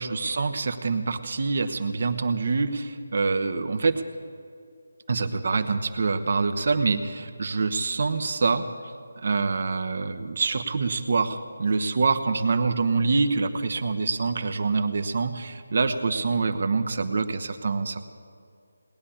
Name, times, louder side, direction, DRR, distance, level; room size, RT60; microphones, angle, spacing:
voice 1, 0.0-4.0 5.1-8.6 9.2-18.0, right 4 dB, 55° right, 8 dB, 1.0 m, -25 dB
19.5 x 9.8 x 7.1 m, 2.3 s
figure-of-eight pair, 155°, 0 cm